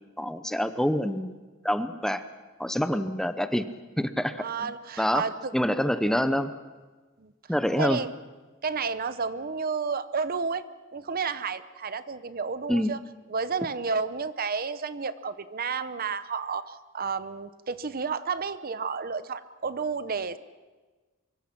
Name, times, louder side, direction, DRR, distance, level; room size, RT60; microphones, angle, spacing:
voice 1, 0.2-1.3 1.6-2.2 2.6-3.7 4.0-4.7 5.0-5.2 5.5-6.5 7.5-8.0 12.7-12.9, equal, ahead, 10 dB, 0.7 m, -26 dB
voice 2, 4.4-5.5 5.9-6.1 7.2-7.3 7.8-8.1 8.6-10.6 10.9-13.0 13.3-20.4, right 5 dB, 45° right, 13 dB, 0.8 m, -31 dB
24.0 x 23.5 x 6.0 m, 1.3 s
head